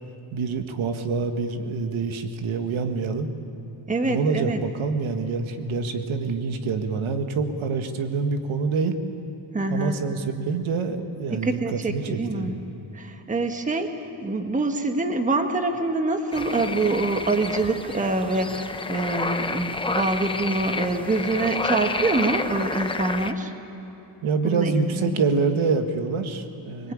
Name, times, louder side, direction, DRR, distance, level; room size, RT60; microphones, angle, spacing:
voice 1, 0.3-3.3 4.0-9.0 9.7-12.6 24.2-26.9, right 4 dB, 80° right, 7 dB, 1.8 m, -26 dB
voice 2, 3.9-4.6 9.5-10.0 11.3-12.6 12.9-14.0 14.2-23.5 24.4-25.2, right 2 dB, 15° right, 5 dB, 1.2 m, -25 dB
sound 1, 16.3-23.3, left 3 dB, 10° left, 0.7 m, -30 dB
24.5 x 22.0 x 8.7 m, 3.0 s
wide cardioid pair, 170°, 48 cm